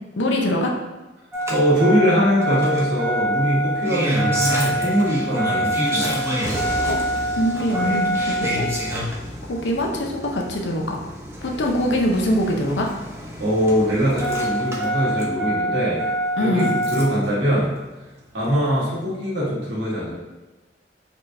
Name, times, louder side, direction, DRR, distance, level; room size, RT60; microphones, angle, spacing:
voice 1, 0.2-0.7 6.9-7.0 7.4-8.6 9.5-11.0 11.4-12.9 16.4-16.7, equal, 80° left, 1 dB, 0.6 m, -23 dB
Engine starting, 1.3-17.2 18.5-18.6, right 1 dB, 15° right, 0.6 m, -26 dB
voice 2, 1.5-6.3 13.4-16.0 16.4-17.7 18.3-20.2, equal, 80° right, -7 dB, 1.5 m, -22 dB
4.3 x 3.3 x 2.6 m, 1.1 s
head